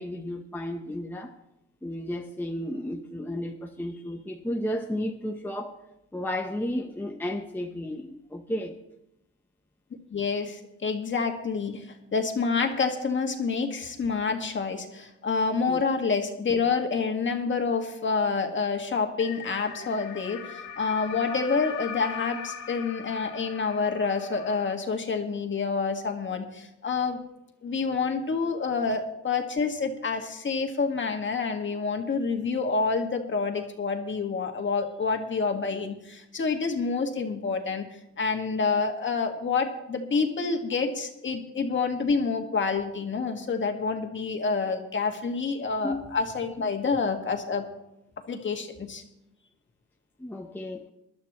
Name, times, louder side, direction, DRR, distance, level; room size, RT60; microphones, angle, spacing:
voice 1, 0.0-1.3 1.8-5.8 6.1-8.8 15.7-15.8 45.8-46.0 50.2-50.9, left 1 dB, 5° left, 3 dB, 0.9 m, -33 dB
voice 2, 10.1-27.2 27.6-37.8 38.2-47.6 48.3-49.0, left 4 dB, 40° left, 4 dB, 1.9 m, -28 dB
sound 1, 19.2-24.7, left 7 dB, 55° left, 2.0 m, -40 dB
21.0 x 12.0 x 3.1 m, 0.86 s
cardioid pair, 90°, 30 cm